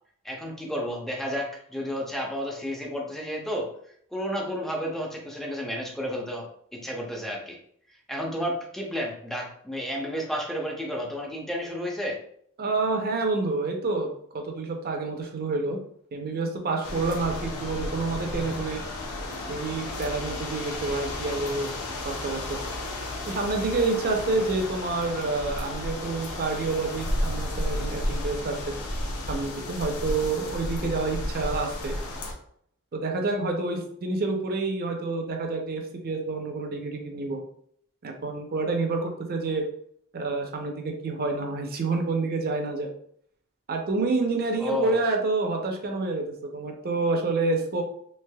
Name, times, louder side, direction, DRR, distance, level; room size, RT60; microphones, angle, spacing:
voice 1, 0.2-3.7 4.1-7.6 8.1-12.2 44.6-45.0, equal, ahead, -1 dB, 0.5 m, -31 dB
voice 2, 12.6-15.8 16.1-18.8 19.5-21.7 22.0-22.4 23.3-28.7 29.3-32.0 32.9-37.4 38.0-39.7 40.1-42.9 43.7-47.8, right 3 dB, 45° right, 3 dB, 0.6 m, -28 dB
sound 1, 16.8-32.3, left 1 dB, 90° left, 0.6 m, -33 dB
3.3 x 3.0 x 2.2 m, 0.64 s
head